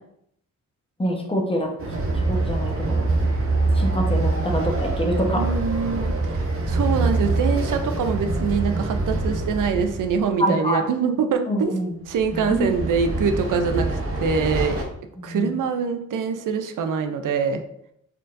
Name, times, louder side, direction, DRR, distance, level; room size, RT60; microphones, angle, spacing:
voice 1, 1.0-1.7 2.3-3.0 3.7-5.4 10.4-10.8 11.5-12.0 12.3-12.7 15.2-15.5, equal, 15° left, 0 dB, 0.9 m, -25 dB
Train, 1.8-10.3 12.1-14.8, right 2 dB, 45° right, 0.8 m, -24 dB
voice 2, 5.4-11.7 12.1-14.8 15.2-17.6, right 5 dB, 75° right, 7 dB, 0.5 m, -24 dB
4.3 x 3.8 x 2.6 m, 0.74 s
cardioid pair, 100°, 31 cm